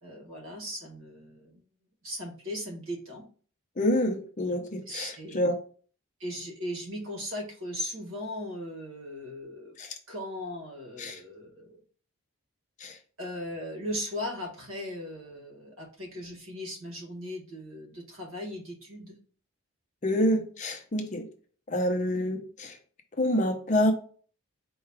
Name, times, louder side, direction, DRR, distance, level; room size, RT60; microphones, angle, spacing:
voice 1, 0.0-1.6 2.0-3.2 4.8-5.4 6.2-9.7 10.1-11.8 13.2-19.2 20.3-20.4, left 1 dB, 70° right, 1.7 m, -38 dB
voice 2, 3.8-5.6 9.8-9.9 11.0-11.2 12.8-13.0 20.0-21.3 21.7-22.8 23.2-23.9, left 1 dB, 35° left, 0.6 m, -27 dB
4.6 x 2.3 x 4.6 m
head